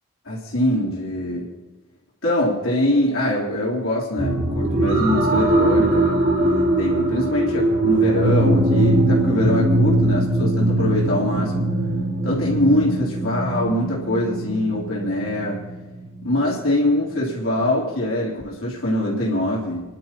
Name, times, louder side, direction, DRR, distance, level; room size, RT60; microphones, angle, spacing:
voice 1, 0.3-1.5 2.2-11.7 12.2-15.6 16.2-19.8, left 1 dB, 75° left, -5 dB, 3.5 m, -23 dB
sound 1, 4.2-17.5 18.1-18.2, right 1 dB, 55° right, 3.3 m, -21 dB
29.0 x 11.5 x 3.0 m, 1.1 s
head